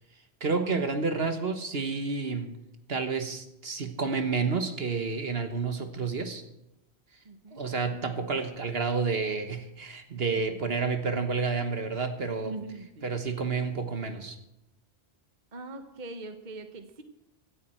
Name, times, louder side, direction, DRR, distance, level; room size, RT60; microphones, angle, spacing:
voice 1, 0.4-2.5 2.9-6.4 7.5-12.5 13.0-14.4, right 4 dB, 65° right, 7 dB, 1.5 m, -30 dB
voice 2, 7.2-7.6 10.3-10.4 12.4-13.1 15.5-17.0, right 2 dB, 45° right, 7 dB, 1.3 m, -41 dB
17.0 x 13.5 x 4.4 m, 0.85 s
omnidirectional pair, 1.1 m